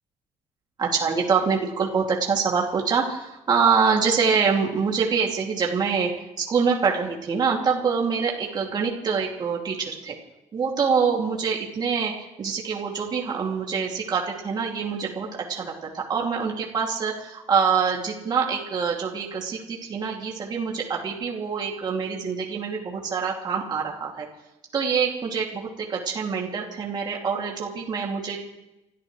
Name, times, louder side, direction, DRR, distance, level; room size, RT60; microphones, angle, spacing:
voice 1, 0.8-6.1 6.4-10.1 10.5-24.3 24.7-28.4, right 5 dB, 35° right, -2 dB, 2.7 m, -25 dB
30.0 x 13.5 x 3.3 m, 0.94 s
cardioid pair, 145°, 12 cm